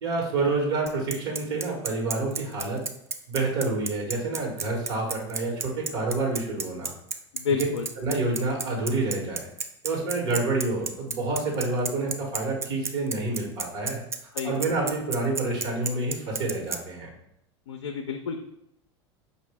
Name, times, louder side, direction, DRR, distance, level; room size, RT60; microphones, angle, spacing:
voice 1, 0.0-2.8 3.3-6.9 7.6-7.7 8.0-9.5 9.8-14.0 14.4-17.1, right 3 dB, 70° right, 0 dB, 1.3 m, -28 dB
Bicycle, 0.9-16.8, right 5 dB, 20° right, 0.3 m, -32 dB
voice 2, 7.3-7.9 14.4-14.6 17.7-18.4, left 6 dB, 85° left, 4 dB, 0.4 m, -29 dB
5.1 x 2.5 x 3.4 m, 0.78 s
hypercardioid pair, 85°, 15 cm